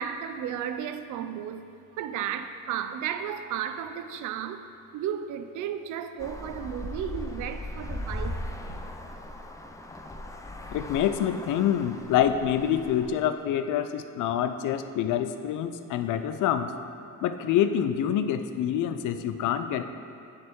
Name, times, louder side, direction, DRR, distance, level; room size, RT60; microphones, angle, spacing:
voice 1, 0.0-4.6 4.9-8.4, right 9 dB, 80° right, 0.5 m, -34 dB
Traffic noise roadway noise, 6.2-13.1, left 1 dB, 10° left, 0.4 m, -38 dB
voice 2, 10.7-16.7 17.2-19.8, left 9 dB, 80° left, 0.5 m, -26 dB
9.1 x 3.6 x 4.5 m
cardioid pair, 90°, 30 cm